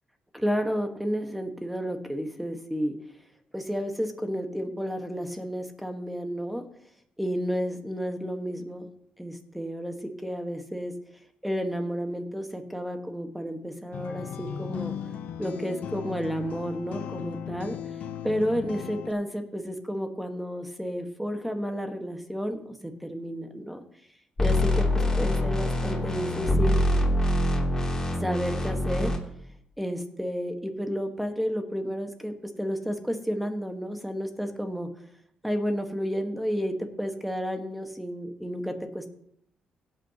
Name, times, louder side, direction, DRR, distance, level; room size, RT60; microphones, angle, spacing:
voice 1, 0.3-2.9 3.5-6.6 7.2-8.8 9.2-10.9 11.4-14.9 15.4-17.7 18.2-23.8 24.4-24.9 25.2-26.8 28.2-29.1 29.8-34.9 35.4-39.1, equal, 5° right, 5 dB, 1.5 m, -31 dB
sound 1, 13.9-19.1, left 8 dB, 75° left, 0.8 m, -37 dB
sound 2, 24.4-29.2, left 1 dB, 20° left, 3.0 m, -25 dB
17.0 x 8.7 x 3.0 m, 0.69 s
cardioid pair, 75°, 3 cm